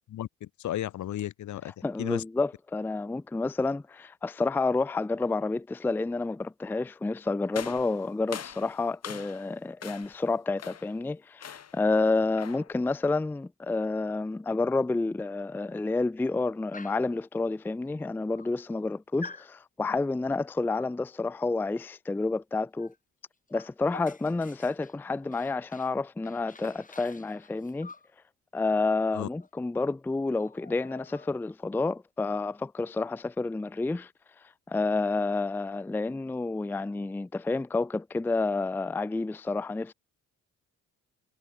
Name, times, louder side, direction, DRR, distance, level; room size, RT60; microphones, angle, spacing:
voice 1, 0.1-1.7 2.0-2.2 29.1-29.3, left 12 dB, 75° left, 2.0 m, -34 dB
voice 2, 1.8-22.9 23.5-27.9 28.5-34.1 34.7-39.9, left 3 dB, 5° left, 0.4 m, -29 dB
sound 1, 7.5-9.5 9.8-10.2 10.6-11.0 11.4-11.8 12.4-12.7, left 8 dB, 55° left, 5.4 m, -42 dB
Dog, 16.7-17.1 18.0-18.1 18.3-18.9 19.2-19.5 20.7-21.0 22.8-23.0 23.2-26.0 26.3-28.1 29.4-29.5 29.8-30.0 30.3-31.5, left 4 dB, 25° left, 6.0 m, -48 dB
cardioid pair, 90°, 30 cm